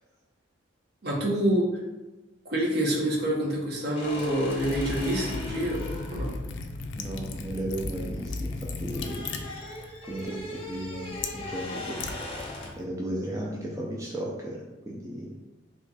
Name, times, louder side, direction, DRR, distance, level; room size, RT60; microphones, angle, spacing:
voice 1, 1.0-1.7 2.5-5.9 6.1-6.3, right 1 dB, 60° right, -3 dB, 0.9 m, -27 dB
sound 1, 3.9-8.2 8.5-12.9, left 2 dB, 30° left, 0.7 m, -39 dB
Liquid, 4.5-12.8, left 3 dB, 70° left, 0.4 m, -37 dB
voice 2, 7.0-9.3 10.0-12.1 12.8-15.3, right 1 dB, 15° right, -3 dB, 0.4 m, -35 dB
3.0 x 2.3 x 3.9 m, 1.1 s
head